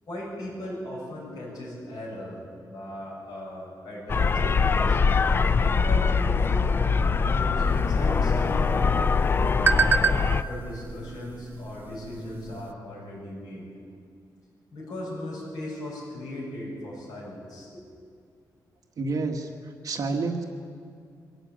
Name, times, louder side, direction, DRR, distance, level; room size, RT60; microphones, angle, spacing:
voice 1, 0.1-5.0 5.6-6.7 7.2-9.2 10.1-13.7 14.7-17.8, left 1 dB, 60° left, -6 dB, 7.0 m, -38 dB
sound 1, 4.1-10.4, left 5 dB, 30° left, 0.4 m, -23 dB
sound 2, 7.6-12.7, right 5 dB, 25° right, 0.8 m, -30 dB
voice 2, 19.0-20.4, right 3 dB, 55° right, 3 dB, 1.6 m, -29 dB
24.0 x 14.0 x 9.2 m, 2.4 s
wide cardioid pair, 160°, 7 cm